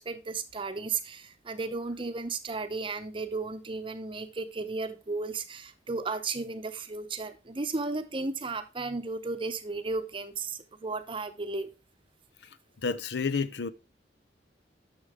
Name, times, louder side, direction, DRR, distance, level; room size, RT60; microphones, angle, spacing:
voice 1, 0.0-11.7, right 3 dB, 30° right, 0.8 m, -34 dB
voice 2, 12.8-13.7, left 5 dB, 75° left, 0.6 m, -30 dB
9.8 x 6.5 x 3.6 m
head